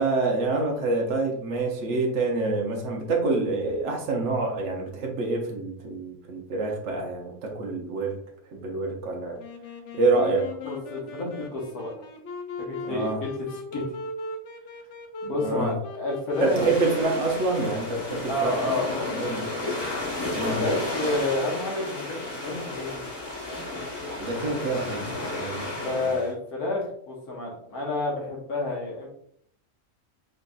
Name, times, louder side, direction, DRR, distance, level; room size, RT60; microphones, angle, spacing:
voice 1, 0.0-8.2 8.5-9.4 9.9-10.5 12.9-13.2 15.4-15.7 16.4-18.7 19.1-19.5 20.3-20.6 24.2-26.1, right 3 dB, 60° right, 0 dB, 1.1 m, -27 dB
Wind instrument woodwind instrument, 9.4-20.5, left 3 dB, 65° left, 0.8 m, -39 dB
voice 2, 10.6-12.0 12.6-14.0 15.2-16.6 18.3-19.8 20.6-23.0 25.8-29.1, left 2 dB, 80° left, -2 dB, 1.7 m, -30 dB
sound 1, 16.3-26.3, left 2 dB, 20° left, 0.9 m, -33 dB
3.9 x 3.9 x 2.2 m, 0.67 s
omnidirectional pair, 1.5 m